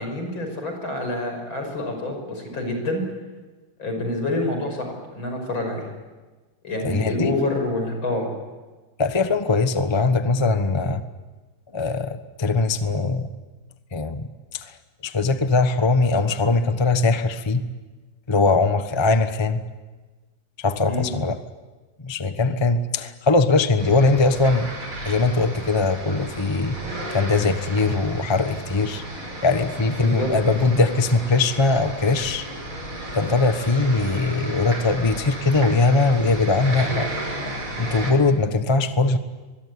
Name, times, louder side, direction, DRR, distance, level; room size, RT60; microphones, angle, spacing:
voice 1, 0.0-3.0 3.8-5.9 6.6-8.3 20.9-21.1 30.0-30.3, left 2 dB, 75° left, 4 dB, 6.7 m, -27 dB
voice 2, 6.8-7.3 9.0-11.0 11.7-13.3 13.9-14.3 14.5-14.7 15.0-17.6 18.3-19.6 20.6-21.4 22.0-24.7 25.0-32.5 33.1-37.1 37.8-39.2, left 3 dB, 15° left, 9 dB, 1.0 m, -21 dB
sound 1, 23.8-38.1, right 1 dB, 85° right, 6.3 m, -34 dB
24.5 x 22.5 x 9.7 m, 1.3 s
omnidirectional pair, 2.2 m